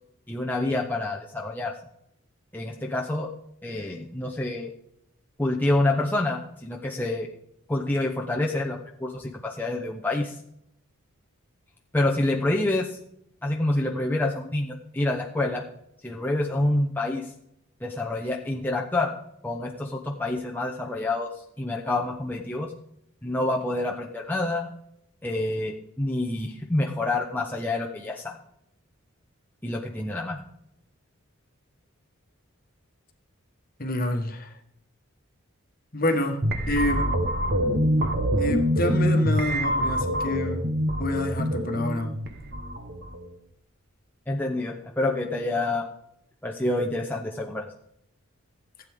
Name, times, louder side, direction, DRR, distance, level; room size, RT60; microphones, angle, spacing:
voice 1, 0.3-1.7 2.5-3.3 3.6-4.7 5.4-7.3 7.7-10.3 11.9-13.0 13.4-15.6 16.0-17.3 17.8-19.1 19.4-22.7 23.2-24.7 25.2-28.4 29.6-30.4 44.3-45.9 46.4-47.6, left 2 dB, 10° left, -1 dB, 0.7 m, -27 dB
voice 2, 33.8-34.6 35.9-37.2 38.4-40.6 41.0-42.1, left 1 dB, 45° left, 5 dB, 1.4 m, -28 dB
sound 1, 36.4-43.3, equal, 50° right, 1.1 m, -25 dB
15.5 x 8.4 x 3.6 m, 0.76 s
head